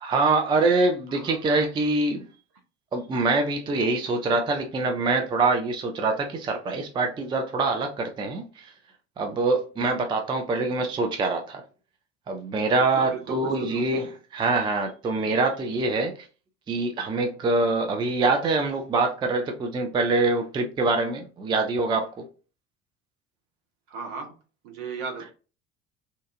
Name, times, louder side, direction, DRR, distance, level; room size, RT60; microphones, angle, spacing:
voice 1, 0.0-2.3 2.9-8.7 9.2-11.6 12.3-16.3 16.7-22.3, right 3 dB, 15° right, 0.4 m, -25 dB
voice 2, 1.1-1.6 12.8-13.8 23.9-24.4 24.6-25.3, right 5 dB, 60° right, 0.9 m, -37 dB
2.7 x 2.4 x 2.4 m
figure-of-eight pair, 65°, 35 cm